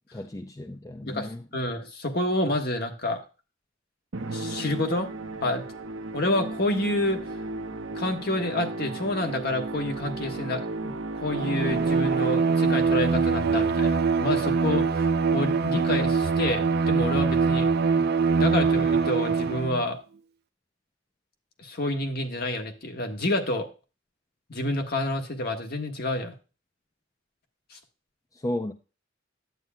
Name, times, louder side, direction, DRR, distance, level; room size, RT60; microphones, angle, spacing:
voice 1, 0.1-1.5 28.3-28.7, left 1 dB, 15° left, 0.4 m, -34 dB
voice 2, 1.0-3.2 4.3-5.1 5.4-5.6 6.1-7.2 7.9-10.9 11.2-17.7 18.4-20.0 21.6-23.7 24.5-26.3 27.7-27.8, left 1 dB, 50° left, 1.4 m, -28 dB
Musical instrument, 4.1-12.7, right 2 dB, 80° right, 0.9 m, -35 dB
Bowed string instrument, 11.3-19.8, right 4 dB, 55° right, 0.5 m, -23 dB
11.0 x 8.6 x 2.3 m
head